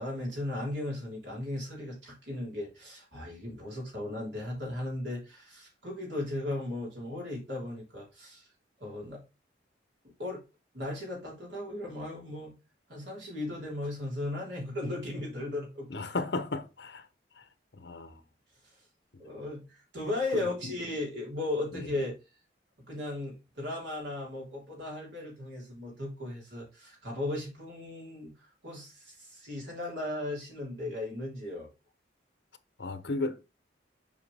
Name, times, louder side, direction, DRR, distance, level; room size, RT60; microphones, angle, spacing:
voice 1, 0.0-8.5 8.8-9.2 10.2-10.4 10.7-12.5 12.9-15.9 18.6-18.8 19.2-22.2 22.9-31.7, left 2 dB, 80° right, 3.7 m, -36 dB
voice 2, 15.9-17.0 17.8-18.2 20.3-20.4 32.8-33.4, left 2 dB, 70° left, 0.8 m, -34 dB
7.5 x 4.9 x 3.4 m
head